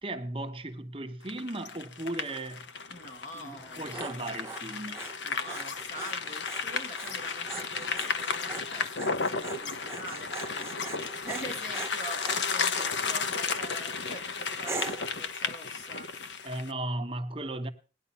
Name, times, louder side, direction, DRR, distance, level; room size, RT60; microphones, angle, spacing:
voice 1, 0.0-2.7 3.3-5.0 16.4-17.7, right 1 dB, 30° right, 1.1 m, -36 dB
sound 1, 1.3-16.7, left 5 dB, 80° left, 1.1 m, -33 dB
voice 2, 2.9-4.0 5.2-16.3, right 1 dB, 40° left, 2.2 m, -44 dB
Dog, 3.5-13.0 13.5-13.9 14.6-15.2, right 3 dB, 15° right, 0.7 m, -42 dB
18.5 x 10.5 x 5.6 m
head